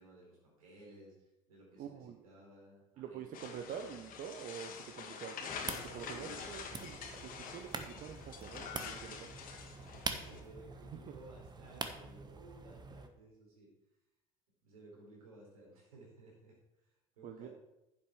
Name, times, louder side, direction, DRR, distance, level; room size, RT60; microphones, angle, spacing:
voice 1, 0.0-3.2 6.0-6.5 9.8-13.7 14.6-17.5, right 1 dB, 85° right, -3 dB, 4.3 m, -57 dB
voice 2, 1.8-2.3 3.0-9.3 17.2-17.5, right 8 dB, 50° right, 6 dB, 0.9 m, -47 dB
sound 1, 3.3-10.4, left 6 dB, 50° left, 1.8 m, -47 dB
sound 2, 5.5-13.1, right 3 dB, 25° right, 1.2 m, -45 dB
9.7 x 7.7 x 4.7 m, 0.91 s
hypercardioid pair, 70°, 18 cm